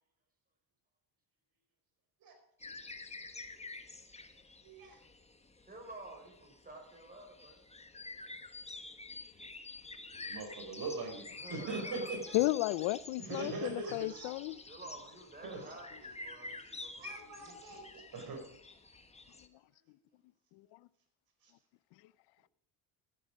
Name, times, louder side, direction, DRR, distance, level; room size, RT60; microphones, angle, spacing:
sound 1, 2.6-19.5, left 3 dB, 15° left, 1.3 m, -49 dB
voice 1, 4.6-5.0 10.3-12.5 13.2-14.4 15.4-15.8 17.0-18.4 21.4-21.5, right 3 dB, 55° right, 4.8 m, -42 dB
voice 2, 5.7-7.6 11.4-12.1 14.4-17.6, right 2 dB, 20° right, 5.4 m, -51 dB
voice 3, 12.3-14.6, left 18 dB, 75° left, 0.6 m, -32 dB
14.5 x 9.6 x 5.0 m
supercardioid pair, 85°, 44 cm